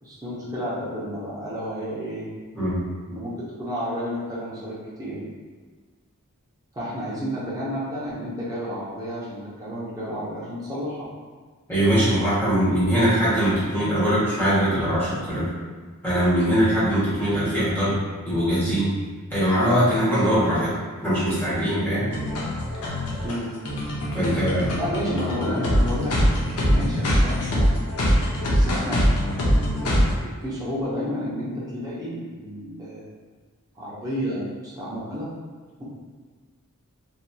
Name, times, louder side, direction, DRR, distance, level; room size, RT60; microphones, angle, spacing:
voice 1, 0.0-2.3 3.1-5.2 6.7-11.0 23.2-23.5 24.8-27.7 28.5-29.0 29.8-33.0 33.8-34.4 34.8-35.3, equal, 15° right, -8 dB, 0.8 m, -31 dB
voice 2, 11.7-15.5 16.0-17.9 18.2-18.9 19.3-20.7 21.0-22.1 24.1-24.8, equal, 10° left, -12 dB, 1.3 m, -21 dB
sound 1, 22.1-30.1, equal, 75° left, 0.6 m, -22 dB
2.9 x 2.7 x 2.3 m, 1.5 s
head